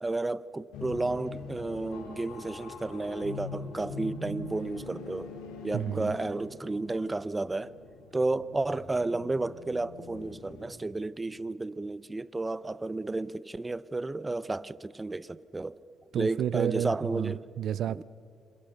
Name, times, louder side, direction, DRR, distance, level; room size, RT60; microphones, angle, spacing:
voice 1, 0.0-5.3 5.6-7.7 8.1-15.8 16.1-17.4 17.9-18.0, right 2 dB, 20° right, 0.8 m, -32 dB
sound 1, 0.7-10.7, left 3 dB, 90° left, 3.7 m, -43 dB
voice 2, 5.7-6.1 16.1-18.0, right 10 dB, 70° right, 0.5 m, -31 dB
27.5 x 26.5 x 6.6 m
cardioid pair, 75°, 0 cm